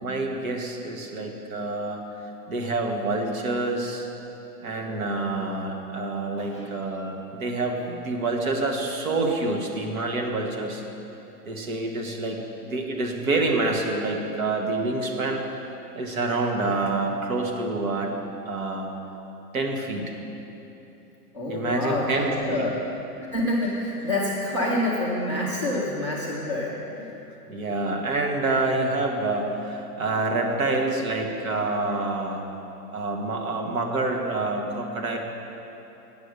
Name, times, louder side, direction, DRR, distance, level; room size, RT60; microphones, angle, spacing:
voice 1, 0.0-2.0 2.5-4.1 4.6-10.8 11.4-15.4 15.9-18.1 18.5-18.9 19.5-20.2 21.5-22.7 27.5-32.4 32.9-35.2, right 2 dB, 55° right, 1 dB, 1.4 m, -27 dB
voice 2, 21.3-22.8 23.3-27.1, left 1 dB, 20° left, -4 dB, 0.4 m, -27 dB
8.9 x 6.6 x 6.7 m, 3.0 s
hypercardioid pair, 160°, 50 cm